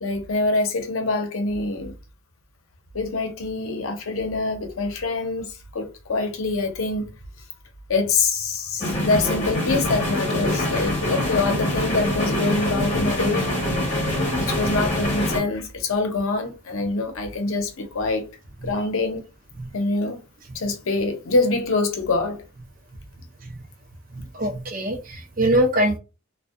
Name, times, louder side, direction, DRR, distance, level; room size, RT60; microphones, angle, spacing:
voice 1, 0.0-1.9 2.9-7.1 7.9-13.5 14.3-18.3 18.6-19.2 19.7-20.2 20.5-22.4, left 3 dB, 80° left, 0.6 m, -25 dB
sound 1, 8.8-15.4, left 1 dB, 35° left, 1.1 m, -24 dB
voice 2, 24.1-26.0, right 1 dB, 40° right, 0.5 m, -23 dB
2.6 x 2.2 x 2.4 m
head